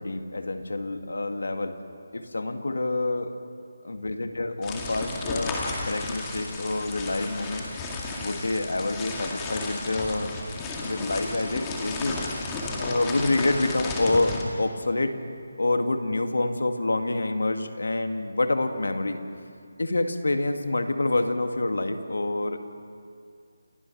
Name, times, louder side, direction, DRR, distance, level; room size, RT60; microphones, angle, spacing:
voice 1, 0.0-1.8 2.1-3.4 3.8-7.7 8.2-10.3 10.8-12.2 12.8-15.2 15.6-19.2 19.8-22.6, left 2 dB, 85° left, 7 dB, 1.8 m, -27 dB
sound 1, 4.6-14.4, left 3 dB, 15° left, 2.0 m, -33 dB
29.5 x 15.0 x 5.9 m, 2.3 s
figure-of-eight pair, 165°, 0 cm